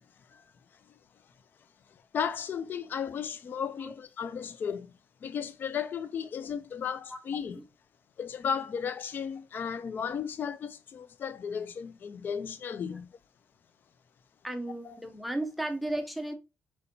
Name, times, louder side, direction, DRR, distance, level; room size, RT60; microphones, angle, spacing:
voice 1, 2.1-4.9 5.2-7.6 8.2-13.1 14.8-14.9, left 7 dB, 45° left, 0.3 m, -34 dB
voice 2, 14.4-16.3, right 1 dB, ahead, 0.6 m, -34 dB
4.3 x 4.1 x 2.7 m
cardioid pair, 140°, 5 cm